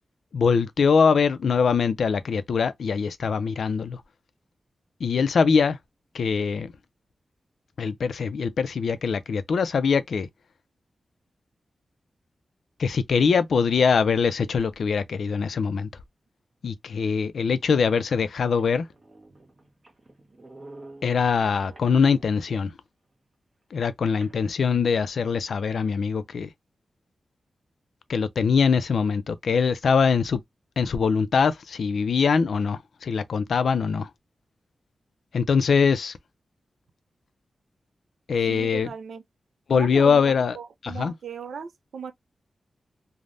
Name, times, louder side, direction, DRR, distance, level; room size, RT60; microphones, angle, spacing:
voice 1, 0.3-4.0 5.0-5.8 6.1-6.7 7.8-10.3 12.8-15.9 16.6-18.9 21.0-22.7 23.7-26.5 28.1-30.4 30.8-34.1 35.3-36.2 38.3-38.9 39.7-40.6 40.8-41.1, left 5 dB, 75° left, 0.3 m, -23 dB
sound 1, 18.5-22.5 24.2-25.3, right 2 dB, 30° right, 0.8 m, -50 dB
voice 2, 38.5-39.2 39.7-42.1, right 6 dB, 90° right, 0.5 m, -37 dB
3.2 x 2.0 x 2.5 m
wide cardioid pair, 145°, 0 cm